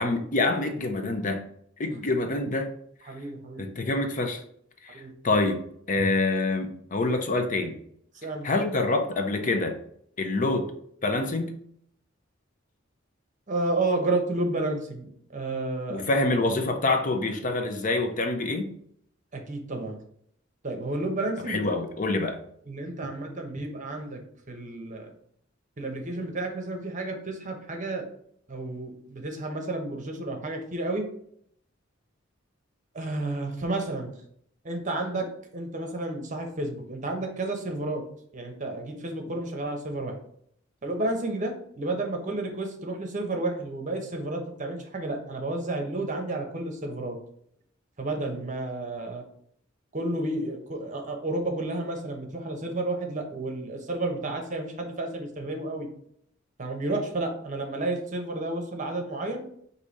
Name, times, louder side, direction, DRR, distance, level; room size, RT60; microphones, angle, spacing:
voice 1, 0.0-1.4 1.8-2.7 3.6-4.4 4.8-5.6 5.9-7.8 8.4-9.8 10.2-10.7 11.0-11.6 15.9-18.7 21.5-22.4, left 2 dB, 40° left, 5 dB, 0.6 m, -26 dB
voice 2, 3.1-3.6 4.9-5.1 8.2-8.5 13.5-16.1 19.3-20.0 20.6-21.6 22.7-24.2 24.5-25.1 25.8-28.0 28.5-31.1 32.9-34.1 34.6-35.3 35.5-38.0 38.3-40.2 40.8-47.2 48.0-49.2 49.9-55.9 56.6-59.4, right 2 dB, 40° right, 3 dB, 0.9 m, -31 dB
4.8 x 2.7 x 4.0 m, 0.67 s
head